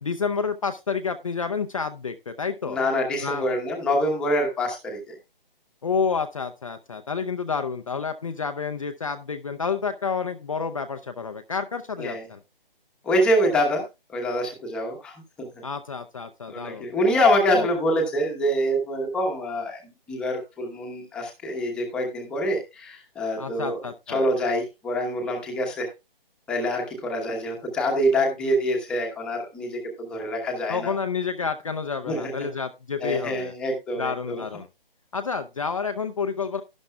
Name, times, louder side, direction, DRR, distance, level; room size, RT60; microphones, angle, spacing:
voice 1, 0.0-2.8 3.2-3.5 5.8-12.4 15.6-16.9 17.5-17.7 23.4-24.3 30.7-33.5 34.0-34.7 35.1-36.6, left 5 dB, 35° left, 7 dB, 0.6 m, -29 dB
voice 2, 2.7-5.2 12.0-12.2 13.0-13.8 14.1-15.5 16.5-19.8 20.1-25.9 26.5-30.9 32.0-32.5 33.0-34.4, equal, 5° left, 1 dB, 1.0 m, -25 dB
12.0 x 11.5 x 2.2 m, 0.25 s
hypercardioid pair, 165°, 29 cm